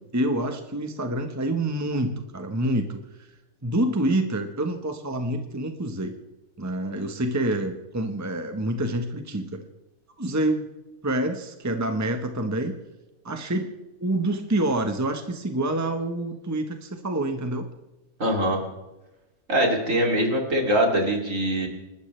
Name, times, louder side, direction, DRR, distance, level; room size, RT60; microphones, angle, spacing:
voice 1, 0.0-3.3 3.6-6.2 6.6-9.6 10.2-10.7 11.0-12.8 13.2-13.7 14.0-17.7, right 1 dB, 10° right, 5 dB, 1.2 m, -27 dB
voice 2, 18.2-18.6 19.5-21.7, right 1 dB, 60° right, 1 dB, 3.4 m, -22 dB
29.5 x 12.5 x 3.4 m, 1.0 s
omnidirectional pair, 1.6 m